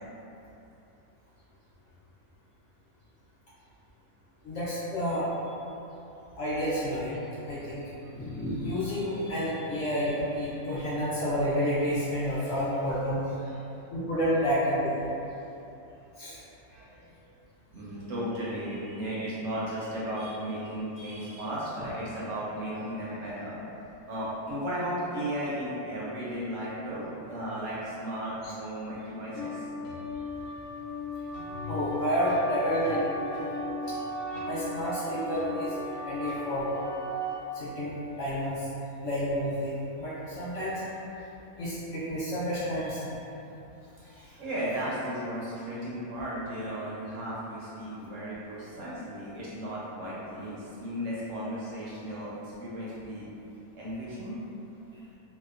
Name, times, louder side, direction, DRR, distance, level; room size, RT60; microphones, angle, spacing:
voice 1, 4.4-5.4 6.4-7.2 7.4-7.8 8.1-13.3 13.9-15.1 16.2-16.4 28.4-28.5 31.5-33.4 33.9-34.0 34.4-35.7 36.0-36.7 37.5-38.7 39.0-39.7 40.0-41.0 41.6-43.1, equal, 65° left, -10 dB, 0.8 m, -30 dB
voice 2, 13.4-13.9 16.7-17.2 17.7-23.6 23.8-29.7 44.0-52.3 52.6-53.3 53.7-54.4, equal, 70° right, -8 dB, 0.8 m, -35 dB
sound 1, 29.3-37.3, left 1 dB, 85° left, 1.1 m, -36 dB
2.7 x 2.0 x 2.3 m, 2.9 s
omnidirectional pair, 1.6 m